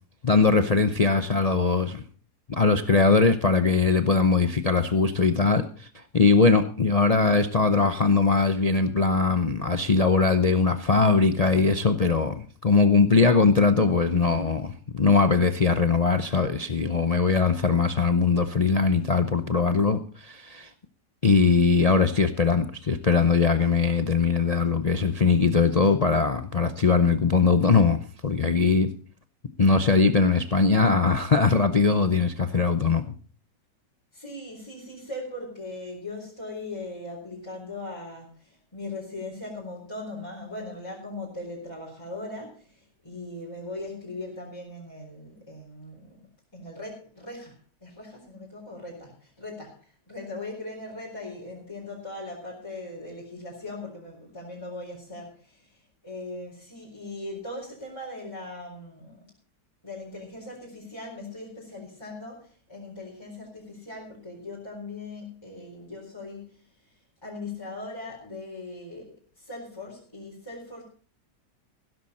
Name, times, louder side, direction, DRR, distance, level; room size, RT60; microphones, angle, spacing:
voice 1, 0.2-2.0 2.5-20.7 21.2-28.9 29.6-33.0, left 4 dB, 65° left, 0.3 m, -21 dB
voice 2, 34.1-46.2 46.5-59.2 59.8-70.8, left 2 dB, 15° left, 4.2 m, -39 dB
16.0 x 13.0 x 4.2 m
omnidirectional pair, 1.9 m